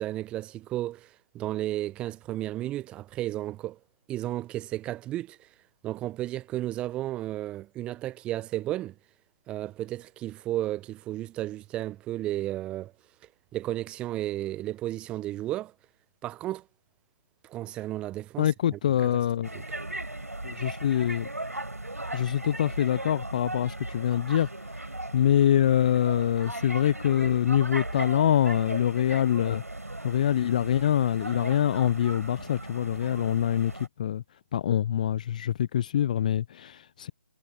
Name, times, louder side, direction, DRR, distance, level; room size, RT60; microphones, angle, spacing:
voice 1, 0.0-3.8 4.1-5.5 5.8-9.0 9.5-12.9 13.5-15.7 16.2-16.7 17.4-19.2 19.5-19.6, right 14 dB, 15° right, 1.0 m, -33 dB
voice 2, 18.4-19.5 20.4-21.3 22.1-24.5 25.1-29.6 30.0-33.7 34.0-34.2 34.5-37.1, left 10 dB, 30° left, 0.3 m, -25 dB
sound 1, 19.4-33.9, right 1 dB, 85° right, 6.3 m, -37 dB
figure-of-eight pair, 140°, 8 cm